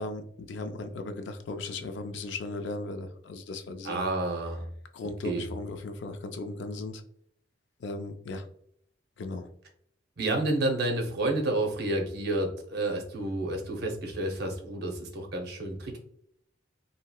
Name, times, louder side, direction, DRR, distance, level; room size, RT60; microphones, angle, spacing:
voice 1, 0.0-4.0 4.9-7.0 7.8-8.5 9.2-9.5, left 2 dB, 65° left, 8 dB, 0.4 m, -37 dB
voice 2, 3.8-4.6 5.2-5.5 10.2-16.0, right 2 dB, 60° right, 3 dB, 0.6 m, -30 dB
2.9 x 2.7 x 2.2 m, 0.68 s
head